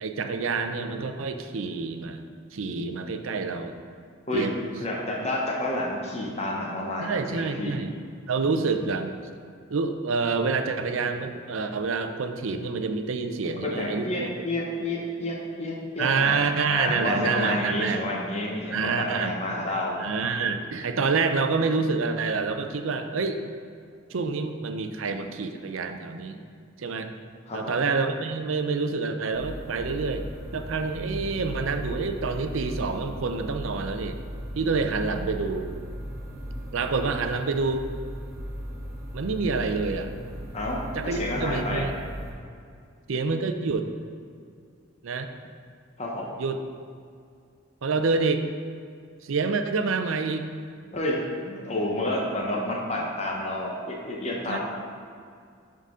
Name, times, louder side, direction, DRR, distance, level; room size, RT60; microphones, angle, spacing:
voice 1, 0.0-2.2 2.5-3.7 4.3-4.6 7.0-7.9 8.3-9.1 9.7-14.3 16.0-18.0 18.7-19.4 20.0-23.4 24.1-26.4 26.8-27.1 27.5-34.2 34.5-35.8 36.7-37.9 39.1-40.1 40.9-41.9 43.1-43.9 45.0-45.3 46.4-46.6 47.8-48.5 49.2-50.5 54.5-54.6, right 4 dB, 70° right, 7 dB, 0.5 m, -27 dB
voice 2, 4.8-7.7 13.6-16.4 16.7-20.0 27.5-27.7 40.5-41.9 46.0-46.3 50.9-51.2 51.4-54.6, left 1 dB, 30° left, -2 dB, 0.9 m, -29 dB
sound 1, 29.3-42.3, equal, 15° right, 1.5 m, -37 dB
11.0 x 3.9 x 3.8 m, 2.2 s
head